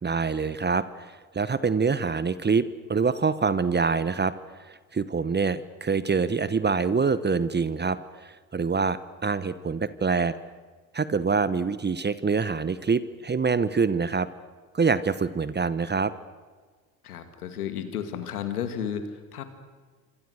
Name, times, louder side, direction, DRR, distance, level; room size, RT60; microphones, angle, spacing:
voice 1, 0.0-10.3 10.9-14.3 14.7-16.1, right 5 dB, 25° right, 15 dB, 1.1 m, -25 dB
voice 2, 17.0-19.4, left 8 dB, 90° left, 9 dB, 2.4 m, -33 dB
27.0 x 25.0 x 6.5 m, 1.5 s
hypercardioid pair, 60°, 43 cm